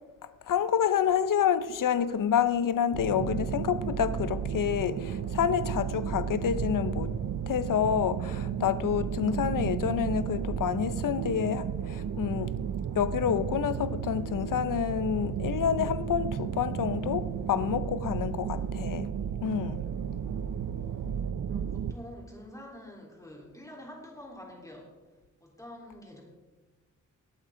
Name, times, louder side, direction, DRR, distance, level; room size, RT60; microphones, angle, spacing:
voice 1, 0.5-7.1 7.5-12.5 13.0-19.1 19.4-19.8, left 8 dB, 85° left, 0.7 m, -28 dB
sound 1, 2.9-21.9, right 8 dB, 65° right, 0.6 m, -33 dB
voice 2, 18.2-18.9 20.7-24.9 25.4-26.2, left 1 dB, 10° left, 3.6 m, -48 dB
19.5 x 8.6 x 3.8 m
wide cardioid pair, 100°, 32 cm